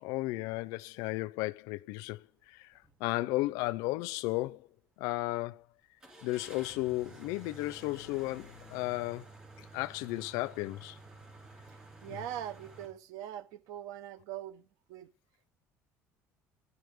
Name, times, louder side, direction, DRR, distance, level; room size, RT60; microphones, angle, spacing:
voice 1, 0.0-2.7 3.0-4.6 5.0-5.6 6.2-9.3 9.7-11.0 12.1-12.2, left 20 dB, 85° left, 0.4 m, -34 dB
sound 1, 2.7-3.0 3.4-3.5 6.0-12.9, right 2 dB, 15° right, 2.4 m, -52 dB
voice 2, 12.0-15.1, right 11 dB, 75° right, 0.7 m, -42 dB
9.5 x 9.3 x 3.5 m
cardioid pair, 170°, 6 cm